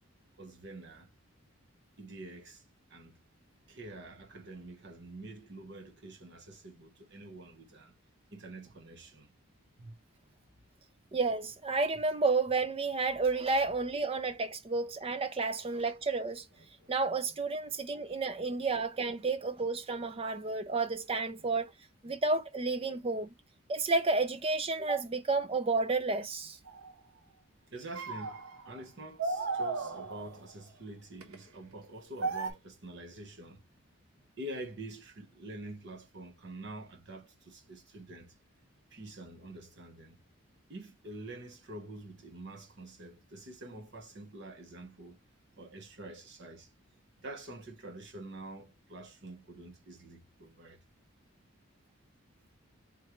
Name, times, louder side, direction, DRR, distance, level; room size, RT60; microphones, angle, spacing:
voice 1, 0.4-1.1 2.0-2.6 2.9-3.1 3.7-7.9 8.3-9.3 9.8-10.0 16.6-17.0 17.3-17.4 21.4-21.5 27.2-27.3 27.7-28.4 28.6-33.6 34.4-38.3 38.9-40.2 40.7-45.2 45.6-46.7 47.2-50.8, right 2 dB, 55° right, 1.0 m, -47 dB
voice 2, 11.1-16.4 16.9-21.7 22.0-23.3 23.7-26.6, right 3 dB, 25° right, 0.4 m, -31 dB
sound 1, 26.7-26.9 27.9-28.8 29.2-30.5 31.2-31.3 32.2-32.5, right 3 dB, 85° right, 1.0 m, -35 dB
3.7 x 3.1 x 3.0 m
head